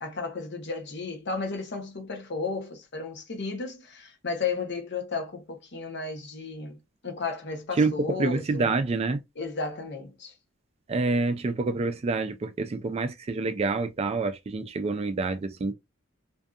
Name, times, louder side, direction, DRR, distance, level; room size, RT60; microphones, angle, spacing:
voice 1, 0.0-8.7 9.4-10.3, left 4 dB, 60° left, 0.8 m, -34 dB
voice 2, 8.2-9.2 10.9-15.7, right 3 dB, 30° right, 0.3 m, -27 dB
2.6 x 2.4 x 2.3 m
head